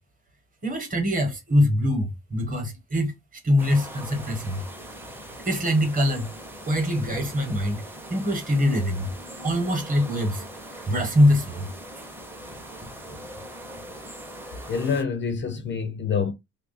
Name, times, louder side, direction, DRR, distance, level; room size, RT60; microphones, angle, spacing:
voice 1, 0.6-3.1 3.4-4.6 5.5-6.3 6.6-7.8 8.1-9.1 9.4-10.4 10.7-11.7, left 1 dB, 25° right, 1.0 m, -23 dB
sound 1, 3.6-15.0, right 1 dB, 5° right, 0.6 m, -41 dB
voice 2, 14.7-16.3, left 6 dB, 40° left, 0.4 m, -26 dB
3.1 x 2.4 x 3.9 m
cardioid pair, 165°, 30 cm